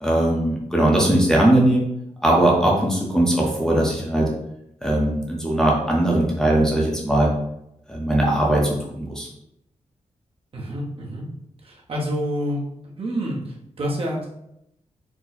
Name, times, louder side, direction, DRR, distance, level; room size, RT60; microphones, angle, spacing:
voice 1, 0.0-1.9 2.2-4.3 4.8-7.3 7.9-9.3, right 1 dB, 5° left, -4 dB, 0.7 m, -19 dB
voice 2, 10.5-11.2 11.6-12.6 13.0-14.4, equal, 45° right, -2 dB, 0.9 m, -28 dB
4.5 x 2.1 x 4.2 m, 0.80 s
wide cardioid pair, 145°, 13 cm